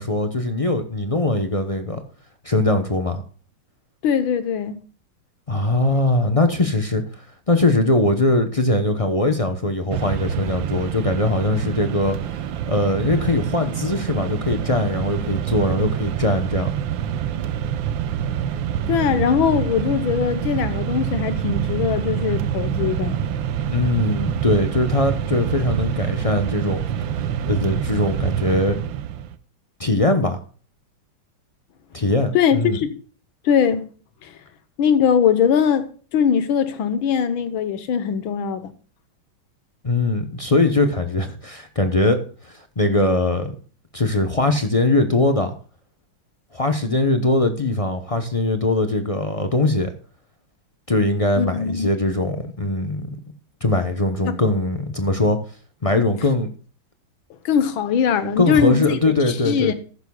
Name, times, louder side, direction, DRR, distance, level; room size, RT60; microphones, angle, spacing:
voice 1, 0.0-2.0 2.4-3.2 5.5-7.0 7.5-16.7 23.7-26.8 27.4-28.8 29.8-30.4 31.9-32.8 39.8-42.2 42.5-43.6 43.9-45.5 46.5-49.9 50.9-53.2 53.6-55.4 55.8-56.5 58.4-59.7, left 2 dB, 50° left, 0.4 m, -21 dB
voice 2, 4.0-4.8 18.9-23.2 32.3-33.0 33.5-33.9 34.2-34.3 34.8-38.7 51.4-51.9 54.3-54.4 57.5-59.0 59.3-59.7, left 7 dB, 75° left, 1.8 m, -21 dB
Mechanisms, 9.9-29.4, right 9 dB, 75° right, 1.4 m, -26 dB
14.5 x 11.5 x 2.3 m
omnidirectional pair, 2.2 m